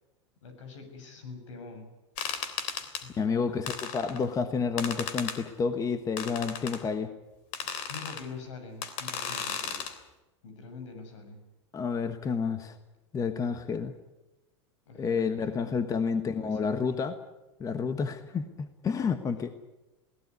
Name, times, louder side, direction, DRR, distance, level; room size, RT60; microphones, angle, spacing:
voice 1, 0.4-1.9 2.9-3.8 7.6-10.1 10.4-11.4 13.4-13.5 14.9-16.1 16.4-16.9 18.9-19.2, left 4 dB, 80° left, 7 dB, 7.1 m, -45 dB
sound 1, 2.2-3.0 3.7-4.2 4.8-5.4 6.2-6.8 7.5-8.2 8.8-9.9, left 7 dB, 50° left, 3.4 m, -35 dB
voice 2, 3.2-7.1 11.7-12.8 13.1-13.9 15.0-17.1 17.6-19.5, left 5 dB, 20° left, 10 dB, 1.3 m, -30 dB
22.0 x 17.5 x 9.6 m, 1.0 s
supercardioid pair, 120°, 15 cm